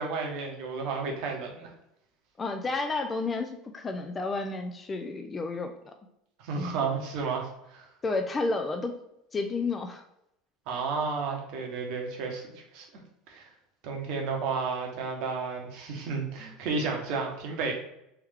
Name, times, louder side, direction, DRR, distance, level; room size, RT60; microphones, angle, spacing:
voice 1, 0.0-1.7 6.4-7.9 10.7-12.4 12.7-12.9 13.3-13.5 13.8-17.7, right 4 dB, 65° right, 1 dB, 1.0 m, -32 dB
voice 2, 2.4-5.9 6.6-6.8 8.0-9.0 9.3-10.0, left 3 dB, 25° left, 5 dB, 0.4 m, -31 dB
3.4 x 3.1 x 3.4 m, 0.82 s
hypercardioid pair, 85°, 0 cm